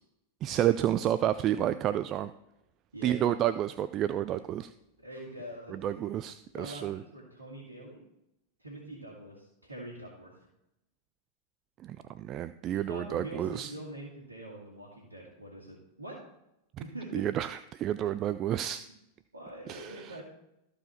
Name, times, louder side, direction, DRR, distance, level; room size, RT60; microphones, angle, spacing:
voice 1, 0.4-2.3 3.0-4.7 5.7-7.0 11.8-13.7 17.1-18.8 19.7-20.2, right 11 dB, 35° right, 13 dB, 0.3 m, -30 dB
voice 2, 2.9-3.4 5.0-5.8 6.5-8.1 8.6-10.3 12.9-16.2 16.8-17.3 19.3-20.2, right 1 dB, 80° right, -4 dB, 2.0 m, -44 dB
13.5 x 4.9 x 4.3 m, 0.86 s
figure-of-eight pair, 90°, 0 cm